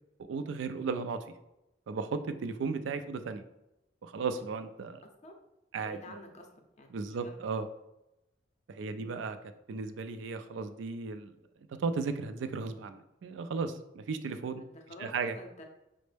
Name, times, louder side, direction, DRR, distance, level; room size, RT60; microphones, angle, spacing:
voice 1, 0.3-1.3 1.9-3.4 4.0-5.0 5.7-6.2 6.9-7.7 8.7-9.4 9.7-11.3 11.7-14.6 15.0-15.4, right 4 dB, 75° right, 9 dB, 0.3 m, -35 dB
voice 2, 5.8-7.5 8.7-9.1 14.7-15.7, left 1 dB, 40° left, 4 dB, 0.5 m, -50 dB
5.1 x 2.0 x 3.3 m, 0.89 s
head